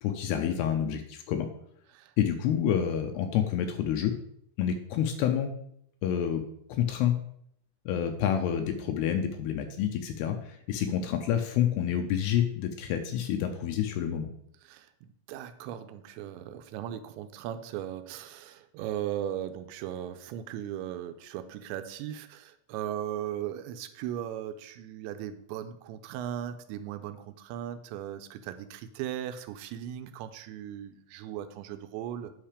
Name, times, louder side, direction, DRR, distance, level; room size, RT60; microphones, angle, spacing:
voice 1, 0.0-1.5 2.2-4.1 4.6-5.5 6.0-6.4 6.7-7.1 7.9-14.3, left 9 dB, 80° left, 6 dB, 2.5 m, -28 dB
voice 2, 14.6-32.3, right 10 dB, 85° right, 9 dB, 2.9 m, -38 dB
8.8 x 5.7 x 5.0 m, 0.71 s
omnidirectional pair, 5.2 m